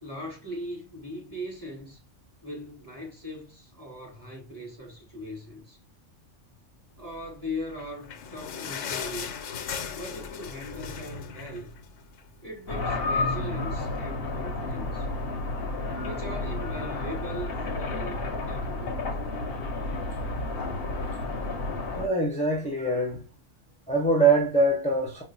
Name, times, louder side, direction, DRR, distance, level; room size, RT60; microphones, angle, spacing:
voice 1, 0.0-2.0 2.4-5.8 7.0-9.3 9.9-11.7 12.4-15.1 15.9-19.0, equal, 15° right, 1.3 m, -39 dB
sound 1, 7.6-12.4 12.8-12.9 13.1-13.3 14.0-14.1, left 7 dB, 85° left, 1.0 m, -37 dB
sound 2, 12.7-22.1, left 2 dB, 60° left, 0.8 m, -31 dB
voice 2, 22.0-23.3 23.9-25.2, right 2 dB, 5° left, 0.6 m, -23 dB
4.8 x 2.1 x 2.6 m
omnidirectional pair, 1.3 m